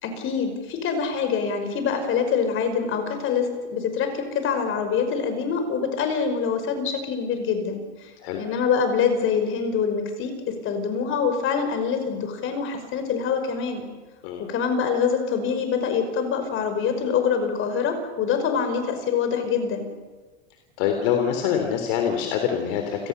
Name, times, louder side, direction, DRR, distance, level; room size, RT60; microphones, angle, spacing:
voice 1, 0.0-8.1 8.4-13.8 14.5-19.9, left 6 dB, 40° left, 7 dB, 5.5 m, -25 dB
voice 2, 20.8-23.1, left 8 dB, 60° left, 5 dB, 3.5 m, -25 dB
30.0 x 18.0 x 6.9 m, 1.4 s
supercardioid pair, 130°, 34 cm